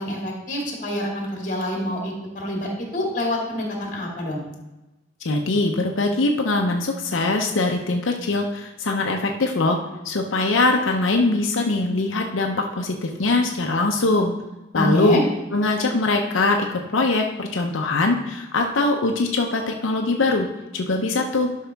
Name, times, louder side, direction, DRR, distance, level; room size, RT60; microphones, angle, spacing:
voice 1, 0.0-4.4 14.7-15.2, left 1 dB, 40° left, -1 dB, 2.1 m, -26 dB
voice 2, 5.2-9.8 10.0-14.3 14.7-15.2 15.5-20.5 20.7-21.5, left 2 dB, 90° left, 2 dB, 0.7 m, -22 dB
12.0 x 5.5 x 3.5 m, 1.0 s
head